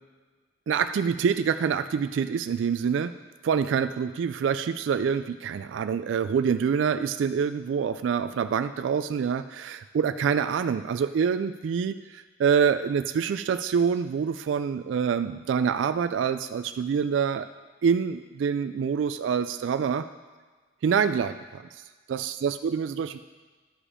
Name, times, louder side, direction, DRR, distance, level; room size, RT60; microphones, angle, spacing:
voice 1, 0.7-3.1 3.4-17.5 17.8-20.1 20.8-21.6 22.1-23.2, right 6 dB, 85° right, 11 dB, 0.3 m, -26 dB
11.5 x 5.0 x 4.9 m, 1.4 s
head